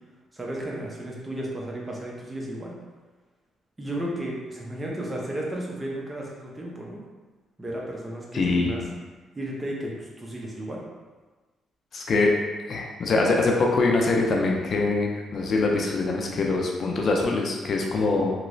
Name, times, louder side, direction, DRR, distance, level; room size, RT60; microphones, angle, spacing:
voice 1, 0.3-2.7 3.8-7.0 7.6-8.8 9.4-10.8 18.1-18.3, right 1 dB, 20° right, -3 dB, 0.7 m, -33 dB
voice 2, 8.3-8.8 11.9-12.3 12.7-18.3, left 3 dB, 55° left, 0 dB, 0.5 m, -23 dB
3.0 x 2.9 x 2.6 m, 1.3 s
cardioid pair, 90°, 0 cm